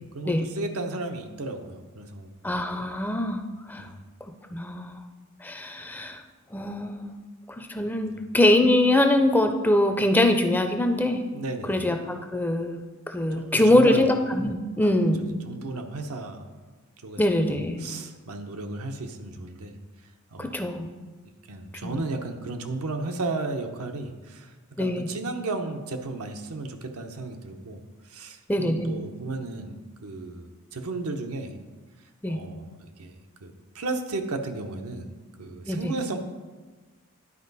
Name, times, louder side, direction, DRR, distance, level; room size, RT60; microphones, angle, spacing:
voice 1, 0.1-2.3 3.8-3.9 11.3-11.8 13.3-14.1 14.8-14.9 15.4-16.5 17.0-19.8 20.3-20.5 21.5-31.6 32.3-33.1 33.4-35.1 35.4-36.2, right 3 dB, 85° right, 5 dB, 0.8 m, -34 dB
voice 2, 2.4-3.4 3.7-3.9 4.2-5.0 5.4-6.2 6.5-7.1 7.5-11.2 11.7-15.3 17.2-17.9 20.4-20.9 21.8-22.0 24.8-25.1 28.5-29.0 32.2-32.4 35.7-35.9, left 1 dB, 10° left, 6 dB, 0.4 m, -23 dB
11.0 x 4.6 x 4.0 m, 1.3 s
head